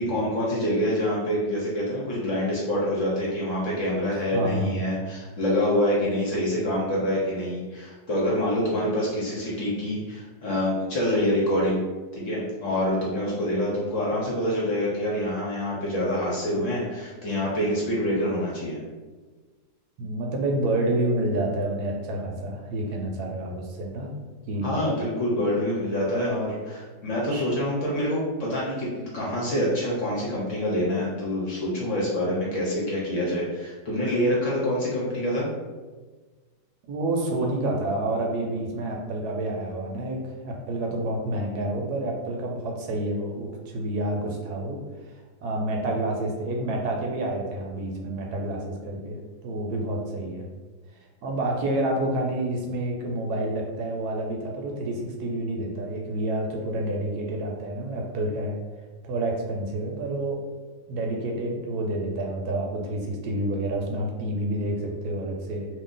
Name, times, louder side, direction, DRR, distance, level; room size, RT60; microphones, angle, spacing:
voice 1, 0.0-11.8 12.1-18.8 24.6-35.4, left 1 dB, 60° left, -5 dB, 0.9 m, -26 dB
voice 2, 4.3-4.9 16.6-16.7 20.0-24.1 24.5-24.8 27.3-27.5 36.9-44.8 45.0-49.2 49.4-50.5 51.2-58.5 59.0-60.4 60.9-65.8, right 1 dB, 75° right, 0 dB, 1.0 m, -29 dB
2.6 x 2.5 x 3.7 m, 1.3 s
omnidirectional pair, 1.8 m